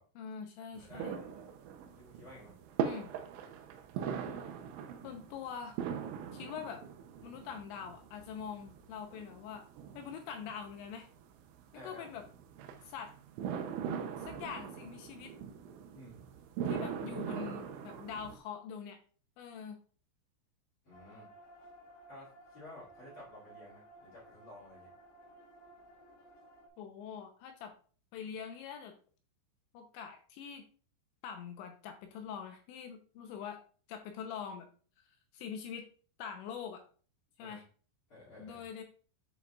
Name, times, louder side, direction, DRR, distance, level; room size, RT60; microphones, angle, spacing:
voice 1, 0.2-1.2 2.8-3.1 5.0-5.8 6.3-6.8 7.2-9.7 10.0-11.1 11.8-12.2 12.8-13.1 14.2-15.3 16.7-19.0 19.4-19.8 26.8-27.7 28.1-28.9 29.7-30.6 31.2-33.6 33.9-34.7 35.0-35.9 36.2-36.8 37.4-37.6 38.4-38.8, left 7 dB, 85° left, 5 dB, 2.7 m, -44 dB
voice 2, 0.8-1.4 1.8-2.5 11.7-12.2 15.9-16.2 20.8-21.3 22.1-24.9 37.4-37.6 38.1-38.6, left 1 dB, 40° left, -9 dB, 2.1 m, -53 dB
sound 1, 0.8-18.4, right 7 dB, 80° right, 2.8 m, -41 dB
sound 2, 20.9-26.7, right 1 dB, 65° left, 3.3 m, -57 dB
10.5 x 5.0 x 2.3 m, 0.41 s
omnidirectional pair, 5.8 m